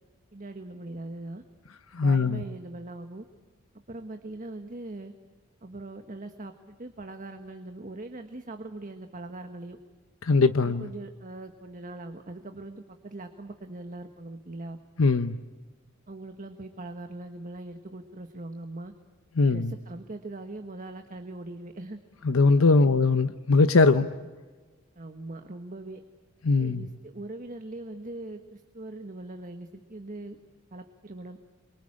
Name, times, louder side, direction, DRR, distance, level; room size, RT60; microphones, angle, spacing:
voice 1, 0.3-1.4 2.0-3.2 3.9-5.1 5.6-9.8 10.6-14.8 16.1-18.9 19.4-22.0 22.8-23.0 25.0-26.0 26.6-30.4 30.7-31.4, right 2 dB, 40° right, 1.4 m, -41 dB
voice 2, 1.9-2.4 10.2-10.9 15.0-15.4 19.4-19.7 22.2-24.1 26.4-26.9, left 3 dB, 80° left, 0.8 m, -21 dB
28.0 x 24.0 x 8.8 m
head